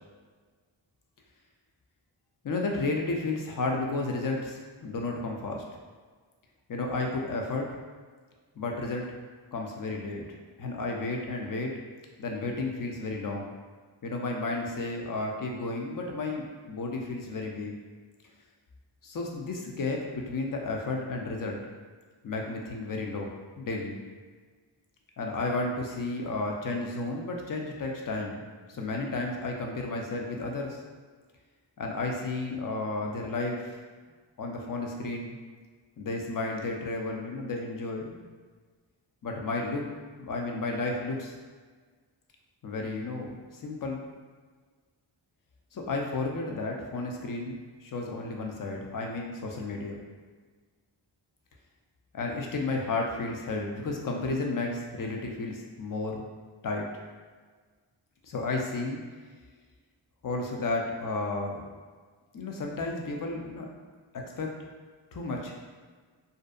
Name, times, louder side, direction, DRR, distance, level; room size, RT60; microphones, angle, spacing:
voice 1, 2.4-5.6 6.7-7.7 8.6-9.1 9.5-10.2 10.6-11.7 12.2-13.5 14.0-17.7 19.0-21.6 22.2-23.3 23.6-24.0 25.2-28.4 28.7-30.8 31.8-33.8 34.4-35.4 36.0-38.2 39.2-39.8 40.2-41.3 42.6-44.0 45.7-50.0 52.1-56.2 56.6-56.9 58.2-59.0 60.2-61.7 62.3-63.7 64.4-64.5 65.1-65.6, left 3 dB, 45° left, 1 dB, 0.5 m, -32 dB
2.6 x 2.1 x 2.4 m, 1.5 s
wide cardioid pair, 50°, 47 cm